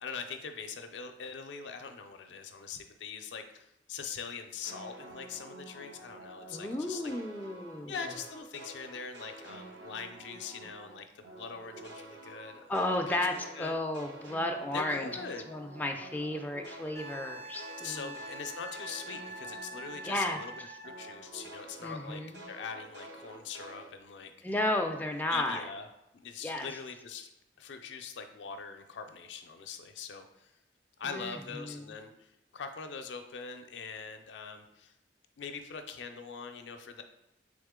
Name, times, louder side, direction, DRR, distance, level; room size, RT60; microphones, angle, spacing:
voice 1, 0.0-7.1 7.9-13.7 14.7-15.4 17.8-20.5 20.8-22.2 22.5-24.3 25.3-25.9 26.1-27.3 27.6-30.5 31.0-34.9 35.4-37.0, left 5 dB, 80° left, 7 dB, 0.4 m, -42 dB
sound 1, 4.6-10.9 11.2-20.5 20.8-23.8, right 2 dB, 80° right, 0.9 m, -49 dB
voice 2, 6.5-8.0 12.7-13.3 13.6-15.1 15.5-18.1 20.0-20.4 21.8-22.4 24.4-25.6 26.4-26.7 31.0-31.9, left 1 dB, 10° left, 3 dB, 0.3 m, -33 dB
Wind instrument woodwind instrument, 17.0-21.2 23.9-24.0, right 1 dB, 35° right, 0.7 m, -45 dB
3.6 x 3.6 x 3.6 m, 0.89 s
head